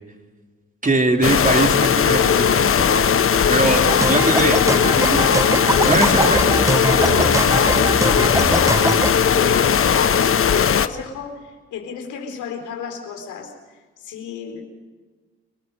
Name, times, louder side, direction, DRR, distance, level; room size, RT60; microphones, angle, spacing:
voice 1, 0.8-6.5 6.9-7.7, right 2 dB, 25° right, 3 dB, 3.6 m, -23 dB
sound 1, 1.2-10.9, left 7 dB, 45° left, 1.1 m, -17 dB
sound 2, 3.9-9.1, right 2 dB, 10° right, 0.7 m, -23 dB
voice 2, 6.2-6.9 7.5-13.5 14.0-14.6, left 6 dB, 70° left, 3 dB, 4.1 m, -32 dB
29.5 x 20.0 x 5.5 m, 1.4 s
hypercardioid pair, 45°, 30 cm